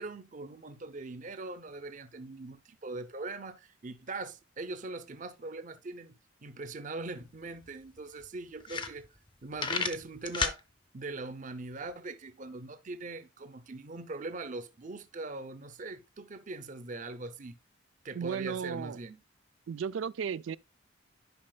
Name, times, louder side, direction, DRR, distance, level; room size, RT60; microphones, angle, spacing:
voice 1, 0.0-9.1 9.4-10.6 10.9-17.6 18.0-19.2, right 3 dB, 40° right, 0.6 m, -41 dB
sound 1, 7.2-7.3 7.6-7.7 8.2-8.3 8.6-9.3 9.6-10.6, left 4 dB, 25° left, 0.7 m, -31 dB
voice 2, 18.2-19.0 19.7-20.6, right 7 dB, 80° right, 0.4 m, -34 dB
10.5 x 5.3 x 2.3 m
head